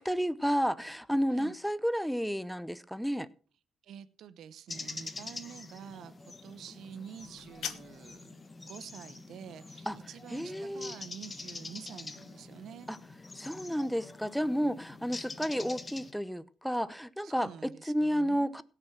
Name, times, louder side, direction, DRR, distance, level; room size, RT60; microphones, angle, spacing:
voice 1, 0.0-3.3 9.9-10.0 10.3-10.9 12.9-13.0 13.4-18.6, equal, ahead, 0.8 m, -31 dB
voice 2, 3.8-12.9 17.2-18.6, right 8 dB, 75° right, 1.0 m, -48 dB
sound 1, 4.7-16.1, left 3 dB, 25° left, 1.3 m, -45 dB
sound 2, 7.2-8.2, left 9 dB, 80° left, 1.3 m, -41 dB
17.0 x 6.4 x 5.9 m
cardioid pair, 90°, 0 cm